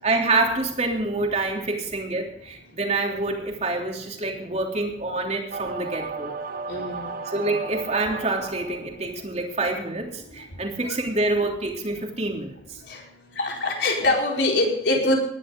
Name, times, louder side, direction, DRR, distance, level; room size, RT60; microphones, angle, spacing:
voice 1, 0.0-6.3 7.3-12.8, right 2 dB, 40° right, 1 dB, 3.3 m, -27 dB
sound 1, 5.5-9.0, right 4 dB, 55° right, 1.3 m, -34 dB
voice 2, 6.7-7.1 10.8-11.0 12.9-13.0 13.3-15.2, left 2 dB, 70° left, -1 dB, 4.7 m, -23 dB
19.5 x 12.0 x 3.9 m, 0.70 s
head